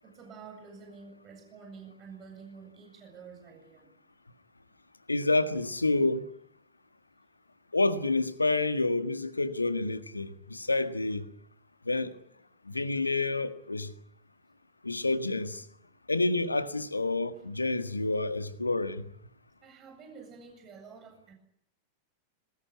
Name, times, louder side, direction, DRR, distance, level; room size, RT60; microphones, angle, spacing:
voice 1, 0.0-3.9 19.6-21.3, right 5 dB, 30° right, 7.9 m, -49 dB
voice 2, 5.1-6.2 7.7-11.2 11.9-12.1 12.7-13.9 14.8-15.6 16.1-19.0, left 2 dB, 80° left, 1.7 m, -28 dB
23.5 x 20.0 x 9.9 m
figure-of-eight pair, 90°, 0 cm